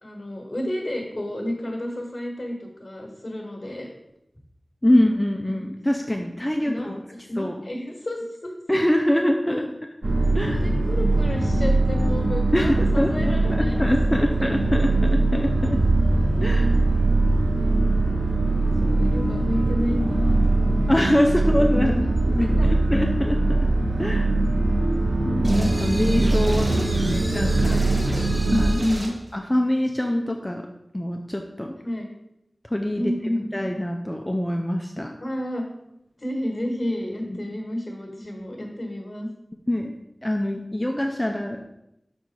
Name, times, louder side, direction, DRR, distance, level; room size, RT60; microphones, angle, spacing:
voice 1, 0.0-3.9 5.5-5.6 6.1-6.2 6.6-6.9 7.3-8.5 9.4-9.7 10.5-13.9 14.2-14.6 18.6-21.0 21.4-21.8 22.4-22.7 26.1-26.9 27.7-28.0 28.5-29.1 31.8-32.1 33.0-33.5 35.2-35.6 36.2-39.3, left 1 dB, 45° left, 0 dB, 1.5 m, -31 dB
voice 2, 4.8-7.0 7.4-7.5 8.7-9.7 10.3-10.6 12.5-15.8 16.4-16.8 20.9-23.6 24.0-24.3 25.2-26.7 27.0-27.7 28.6-28.7 29.3-30.7 30.9-31.8 32.7-33.1 33.5-35.1 37.3-37.4 39.7-41.6, left 1 dB, 15° left, 2 dB, 0.5 m, -24 dB
sound 1, 10.0-28.7, right 2 dB, 70° right, 0.7 m, -21 dB
sound 2, 25.4-29.2, right 1 dB, 55° right, 1.4 m, -34 dB
6.1 x 4.2 x 4.7 m, 0.84 s
wide cardioid pair, 60°, 0 cm